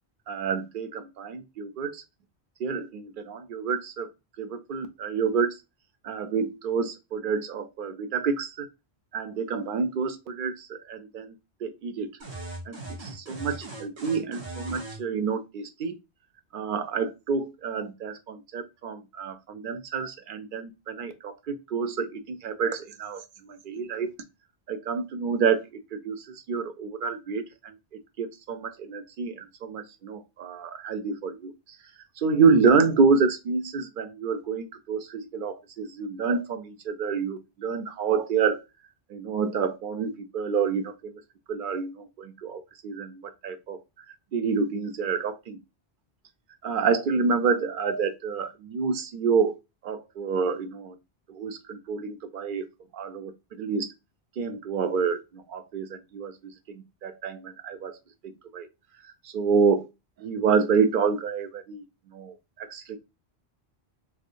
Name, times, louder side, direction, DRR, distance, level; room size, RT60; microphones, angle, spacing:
voice 1, 0.3-2.0 2.6-4.1 4.4-5.5 6.0-8.7 9.1-11.3 11.6-12.1 12.7-16.0 16.5-24.1 24.7-27.8 28.2-31.5 32.2-38.6 39.1-41.2 41.5-43.8 44.3-45.6 46.6-49.5 49.8-51.0 51.3-52.7 52.9-53.9 54.4-56.3 56.7-58.0 58.2-58.7 59.2-59.9 60.2-61.8 62.1-63.0, right 5 dB, 60° right, 0.6 m, -28 dB
sound 1, 12.2-15.0, right 2 dB, 80° right, 1.3 m, -39 dB
3.4 x 2.5 x 2.6 m
omnidirectional pair, 1.1 m